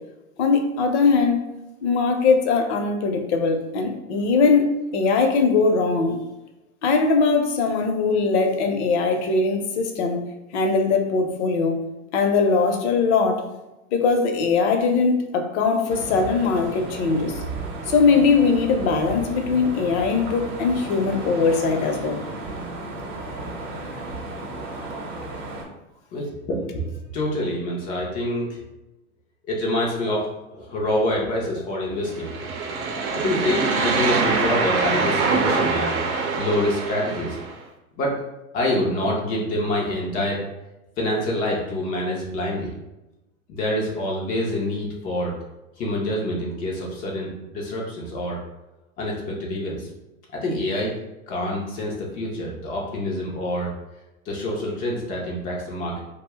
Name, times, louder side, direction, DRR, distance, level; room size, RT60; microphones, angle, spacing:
voice 1, 0.4-1.4 1.8-6.2 6.8-10.2 10.5-11.8 12.1-13.4 13.9-17.3 17.9-22.2, left 4 dB, 50° left, 4 dB, 0.6 m, -20 dB
sound 1, 15.9-25.7, right 2 dB, 45° right, 0.8 m, -34 dB
voice 2, 26.1-26.8 27.1-28.5 29.4-32.8 33.1-36.0 36.3-37.4 38.0-38.2 38.5-40.4 41.0-42.7 43.5-45.3 45.8-48.4 49.0-49.9 50.3-50.9 51.3-53.7 54.3-56.0, left 1 dB, 20° left, -2 dB, 0.3 m, -26 dB
sound 2, 32.1-37.5, right 4 dB, 85° right, 0.7 m, -24 dB
2.6 x 2.1 x 3.4 m, 0.99 s
hypercardioid pair, 110°, 42 cm